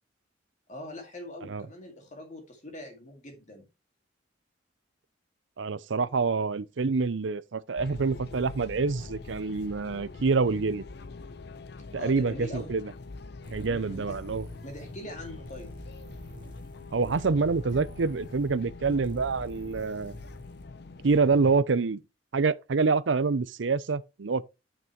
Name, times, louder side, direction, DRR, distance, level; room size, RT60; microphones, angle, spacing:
voice 1, 0.7-3.7 11.9-12.7 13.7-14.2 14.6-15.7, left 1 dB, 40° left, 2.3 m, -42 dB
voice 2, 5.6-10.8 11.9-12.9 13.5-14.4 16.9-20.1 21.0-22.0 22.3-24.4, right 4 dB, 90° right, 0.6 m, -26 dB
sound 1, 7.8-21.6, left 3 dB, 60° left, 0.7 m, -44 dB
sound 2, 13.4-20.7, equal, 25° right, 1.3 m, -46 dB
9.3 x 6.1 x 3.1 m
head